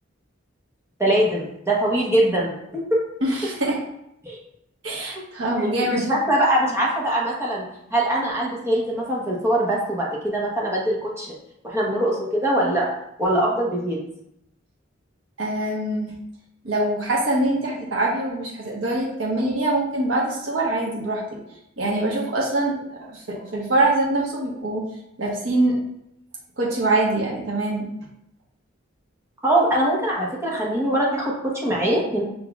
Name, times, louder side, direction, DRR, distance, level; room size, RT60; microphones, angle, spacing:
voice 1, 1.0-3.0 4.2-4.4 5.9-7.6 7.9-11.3 11.6-12.9 13.2-14.0 29.4-32.2, right 1 dB, 15° right, -4 dB, 1.0 m, -22 dB
voice 2, 3.2-3.8 4.8-6.1 15.4-16.1 16.6-21.4 21.8-24.9 25.2-25.8 26.6-27.9, right 2 dB, 70° right, -4 dB, 1.1 m, -24 dB
5.5 x 4.0 x 2.3 m, 0.79 s
head